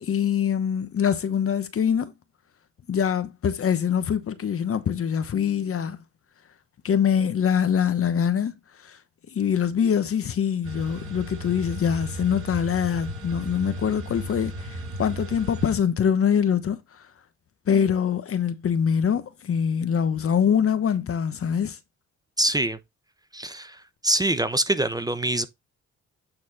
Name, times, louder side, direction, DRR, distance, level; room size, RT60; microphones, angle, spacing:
voice 1, 0.0-2.1 2.9-6.0 6.8-8.5 8.8-9.0 9.3-17.0 17.7-21.8, left 8 dB, 50° left, 1.1 m, -24 dB
sound 1, 10.6-15.8, right 1 dB, 45° right, 6.1 m, -35 dB
voice 2, 22.4-22.8 23.3-25.5, right 1 dB, 15° right, 0.8 m, -25 dB
8.9 x 4.2 x 4.1 m
cardioid pair, 90°, 30 cm